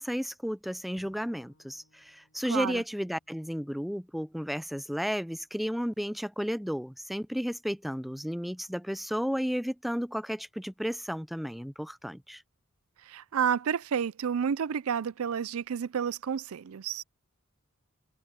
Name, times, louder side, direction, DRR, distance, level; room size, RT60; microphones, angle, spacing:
voice 1, 0.0-12.4, equal, ahead, 0.4 m, -33 dB
Bowed string instrument, 1.0-4.2, left 1 dB, 70° left, 7.9 m, -66 dB
voice 2, 2.5-2.8 13.1-17.0, right 7 dB, 80° right, 0.4 m, -30 dB
head